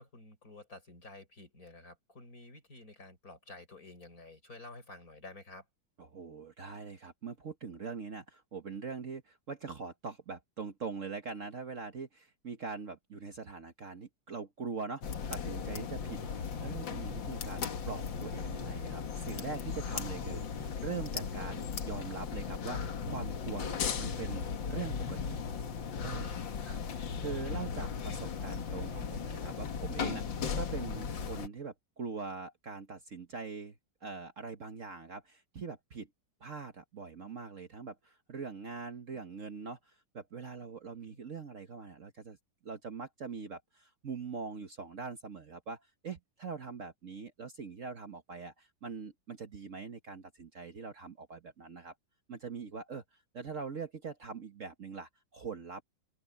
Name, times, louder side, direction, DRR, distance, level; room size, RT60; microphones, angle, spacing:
voice 1, 0.0-5.7 26.6-26.8 27.4-27.7 41.0-41.2, left 2 dB, 50° left, 6.6 m, -51 dB
voice 2, 6.0-15.0 15.3-25.4 26.0-26.4 27.2-33.7 34.0-36.1 36.4-39.8 40.1-42.4 42.6-51.9 52.3-53.0 53.3-55.8, right 5 dB, 45° right, 1.5 m, -42 dB
sound 1, 15.0-31.5, left 6 dB, 90° left, 2.2 m, -37 dB
open air
omnidirectional pair, 2.0 m